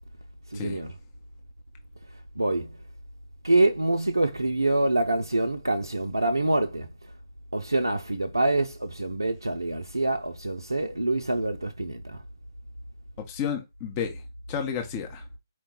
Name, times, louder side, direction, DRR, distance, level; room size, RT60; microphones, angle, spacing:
voice 1, 0.5-0.9 2.4-2.8 3.4-6.9 7.5-12.2, right 2 dB, 85° right, 0.4 m, -26 dB
voice 2, 13.2-14.2 14.5-15.2, left 7 dB, 25° left, 0.7 m, -31 dB
4.5 x 2.2 x 3.5 m
figure-of-eight pair, 135°, 2 cm